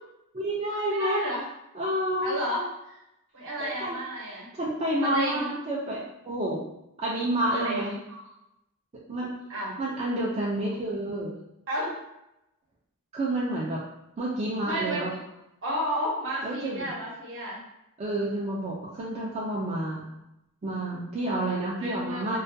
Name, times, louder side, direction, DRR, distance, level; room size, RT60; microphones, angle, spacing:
voice 1, 0.3-1.2 1.7-2.4 3.6-4.0 4.5-6.6 7.0-8.0 9.1-9.3 9.8-11.3 13.1-13.8 14.2-15.1 16.4-16.9 18.0-20.1 20.6-22.4, right 1 dB, 30° right, -6 dB, 0.4 m, -29 dB
voice 2, 0.9-1.4 2.2-3.0 3.3-4.5 5.0-5.5 7.5-8.3 9.5-9.8 11.7-11.9 14.6-15.1 15.6-17.6 21.2-22.4, equal, 60° right, -4 dB, 0.8 m, -32 dB
2.3 x 2.2 x 2.5 m, 0.85 s
head